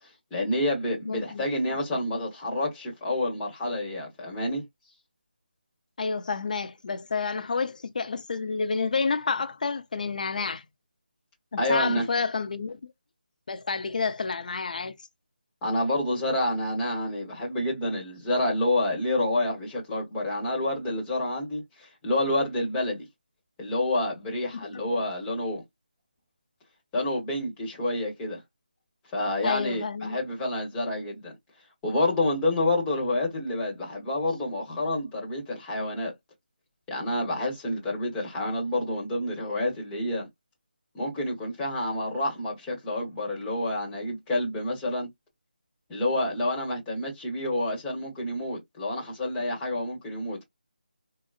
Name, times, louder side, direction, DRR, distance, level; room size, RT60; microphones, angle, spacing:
voice 1, 0.3-4.6 11.6-12.1 15.6-23.1 23.6-25.6 26.9-28.4 29.1-31.3 31.8-36.1 36.9-40.3 40.9-45.1 45.9-50.4, left 1 dB, 10° left, 1.0 m, -28 dB
voice 2, 1.1-1.5 6.0-10.6 11.5-12.8 13.5-15.0 24.5-24.8 29.4-30.2, left 4 dB, 50° left, 0.6 m, -29 dB
3.7 x 2.0 x 2.4 m
figure-of-eight pair, 165°, 6 cm